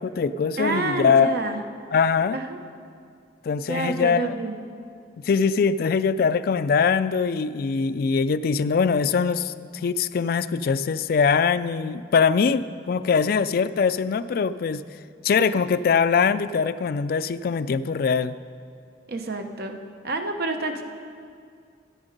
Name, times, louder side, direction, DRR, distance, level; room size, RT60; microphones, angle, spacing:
voice 1, 0.0-1.3 1.9-2.4 3.4-4.3 5.2-9.5 9.8-14.8 15.2-18.3, left 5 dB, 55° left, 13 dB, 0.3 m, -22 dB
voice 2, 0.6-1.6 2.3-2.6 3.7-4.6 19.1-19.8 20.0-20.8, right 2 dB, 60° right, 5 dB, 0.9 m, -28 dB
13.5 x 8.9 x 5.2 m, 2.3 s
head